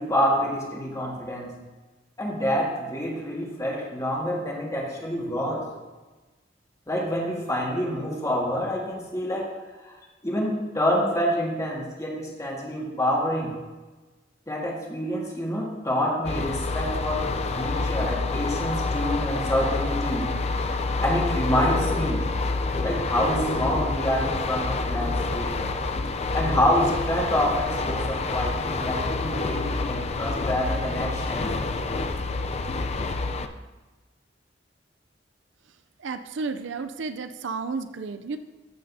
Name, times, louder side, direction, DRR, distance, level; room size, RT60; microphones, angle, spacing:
voice 1, 0.0-1.5 2.2-5.7 6.9-9.5 9.8-9.9 10.2-13.5 14.5-20.3 21.0-22.3 22.8-25.6 26.3-31.5, equal, 15° left, -2 dB, 1.7 m, -27 dB
sound 1, 16.2-33.5, left 3 dB, 35° left, 0.5 m, -27 dB
voice 2, 36.0-38.4, right 4 dB, 70° right, 9 dB, 0.5 m, -32 dB
14.0 x 6.7 x 2.7 m, 1.2 s
head